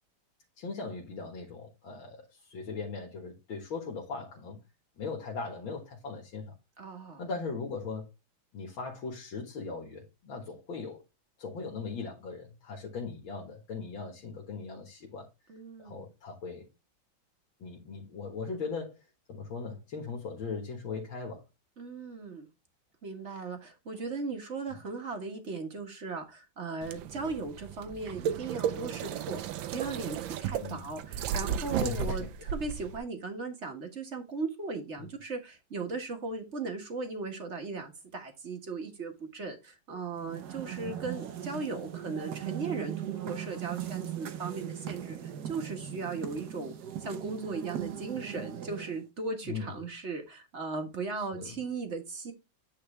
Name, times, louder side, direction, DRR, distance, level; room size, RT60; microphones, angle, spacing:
voice 1, 0.6-4.6 5.0-6.5 7.2-8.1 8.5-11.0 11.4-15.3 15.8-16.7 17.6-19.0 19.3-21.4 24.7-24.8 30.6-30.9 31.8-32.3 35.0-35.1 40.8-41.0 49.4-49.7 51.2-51.6, left 4 dB, 80° left, 2.3 m, -39 dB
voice 2, 6.8-7.2 15.5-16.1 21.8-22.5 23.0-29.4 29.7-52.3, right 4 dB, 35° right, 1.7 m, -37 dB
sound 1, 26.8-33.0, right 8 dB, 80° right, 1.4 m, -34 dB
sound 2, 40.2-49.1, right 10 dB, 60° right, 1.3 m, -39 dB
8.8 x 4.6 x 3.3 m
omnidirectional pair, 2.2 m